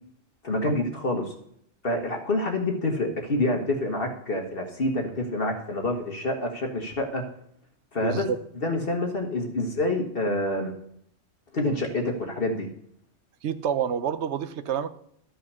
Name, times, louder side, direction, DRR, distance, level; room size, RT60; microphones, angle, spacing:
voice 1, 0.4-1.3 1.8-7.2 7.9-8.3 8.6-10.7 11.5-12.7, left 2 dB, 45° left, 2 dB, 1.4 m, -27 dB
voice 2, 8.0-8.4 13.4-14.9, right 8 dB, 65° right, 13 dB, 0.9 m, -28 dB
12.5 x 5.8 x 6.7 m, 0.69 s
omnidirectional pair, 1.4 m